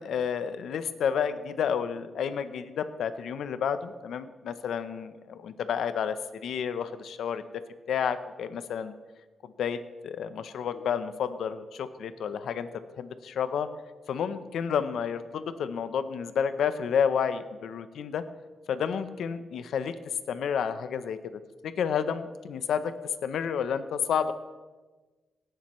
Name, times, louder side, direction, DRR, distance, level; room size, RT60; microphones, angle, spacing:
voice 1, 0.0-6.2 6.4-7.4 7.9-8.9 9.4-12.7 13.0-13.7 14.1-18.2 18.7-19.9 20.3-22.9 23.2-24.3, left 7 dB, 80° left, 12 dB, 0.7 m, -30 dB
17.0 x 11.5 x 3.1 m, 1.3 s
cardioid pair, 125°, 0 cm